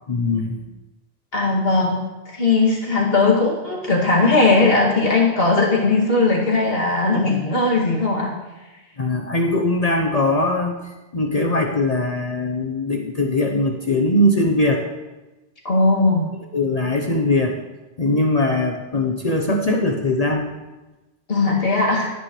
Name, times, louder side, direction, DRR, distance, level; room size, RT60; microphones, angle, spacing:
voice 1, 0.1-0.7 9.0-14.8 16.5-17.6 18.0-20.6, left 2 dB, 40° left, 1 dB, 1.0 m, -21 dB
voice 2, 1.3-2.0 2.3-8.3 15.6-16.3 21.3-22.1, left 3 dB, 65° left, -3 dB, 2.6 m, -18 dB
16.0 x 9.5 x 3.2 m, 1.1 s
omnidirectional pair, 1.1 m